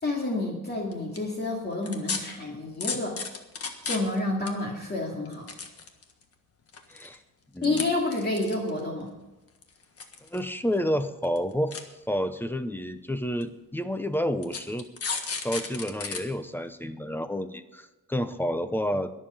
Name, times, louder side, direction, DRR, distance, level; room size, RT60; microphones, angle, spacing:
voice 1, 0.0-3.1 3.8-5.5 7.6-9.1, left 2 dB, 30° left, -1 dB, 2.3 m, -29 dB
sound 1, 0.9-1.2 1.9-2.2 2.8-4.2 4.5-4.6 5.2-6.2 6.7-7.1 7.6-7.8 8.1-8.8 9.6-10.4 10.7-10.8 11.2-11.4 11.7-11.8 12.6-12.7 13.4-13.5 14.4-16.2 16.6-16.7, left 5 dB, 45° left, 1.6 m, -33 dB
voice 2, 6.9-7.2 7.5-7.9 10.2-11.8 12.1-14.9 15.4-19.1, equal, 5° left, 11 dB, 0.7 m, -30 dB
22.0 x 7.5 x 5.1 m, 1.0 s
wide cardioid pair, 160°, 32 cm